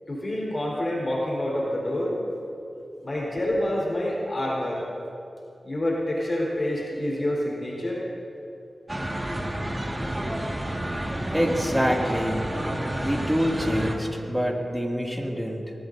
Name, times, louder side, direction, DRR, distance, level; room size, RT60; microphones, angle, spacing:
voice 1, 0.1-2.2 3.0-4.8 5.6-8.0, left 1 dB, 35° left, -4 dB, 4.2 m, -27 dB
sound 1, 8.9-14.0, right 1 dB, 20° right, 1.9 m, -30 dB
voice 2, 11.3-12.5 13.0-15.7, equal, 5° right, -1 dB, 2.4 m, -26 dB
23.5 x 19.0 x 2.7 m, 2.7 s
wide cardioid pair, 70°, 0 cm